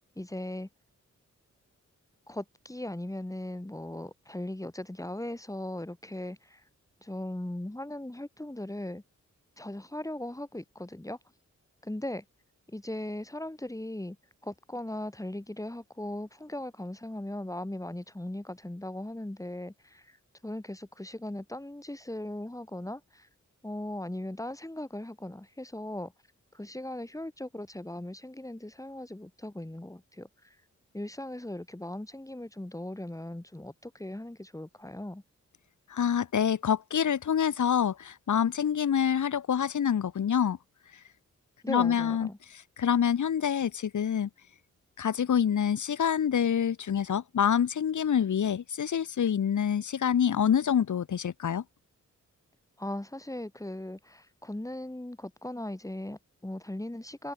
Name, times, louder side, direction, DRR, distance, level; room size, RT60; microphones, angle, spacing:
voice 1, 0.2-0.7 2.3-6.6 7.0-9.0 9.6-11.2 11.8-12.2 12.7-14.2 14.4-20.0 20.4-23.3 23.6-26.1 26.5-30.3 30.9-35.2 41.6-42.4 52.8-57.3, left 1 dB, 10° left, 6.8 m, -38 dB
voice 2, 35.9-40.6 41.7-42.3 42.8-44.3 45.0-51.6, left 8 dB, 80° left, 1.4 m, -26 dB
wide cardioid pair, 125°, 30 cm